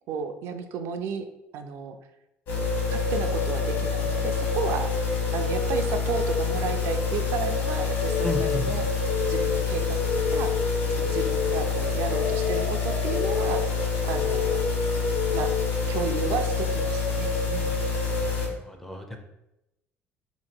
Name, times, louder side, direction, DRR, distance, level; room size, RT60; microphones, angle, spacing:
voice 1, 0.1-1.2 1.5-2.0 2.9-4.9 5.3-8.9 9.3-10.0 10.3-13.7 14.0-14.6 15.3-15.5 15.9-17.8, right 6 dB, 65° right, 6 dB, 0.4 m, -33 dB
sound 1, 2.5-18.5, left 4 dB, 55° left, 1.2 m, -26 dB
Telephone, 8.0-8.6 9.1-9.6 10.1-10.6 11.1-11.6 12.1-12.6 13.1-13.6 14.1-14.6 15.1-15.6, left 10 dB, 90° left, 0.5 m, -29 dB
voice 2, 8.2-8.7 18.2-19.2, equal, 5° left, 4 dB, 0.4 m, -33 dB
2.9 x 2.6 x 4.3 m, 0.89 s
cardioid pair, 145°, 5 cm